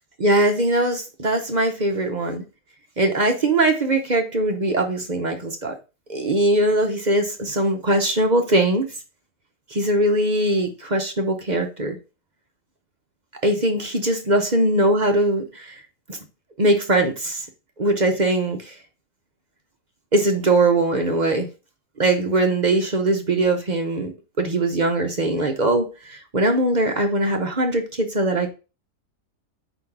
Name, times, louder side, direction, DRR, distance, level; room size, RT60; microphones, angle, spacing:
voice 1, 0.2-2.4 3.0-5.7 6.1-8.9 9.7-12.0 13.4-15.8 16.1-16.2 16.6-17.5 17.8-18.7 20.1-21.5 22.0-24.1 24.4-28.5, right 2 dB, 40° right, 4 dB, 0.7 m, -21 dB
5.0 x 3.9 x 5.8 m, 0.31 s
omnidirectional pair, 1.7 m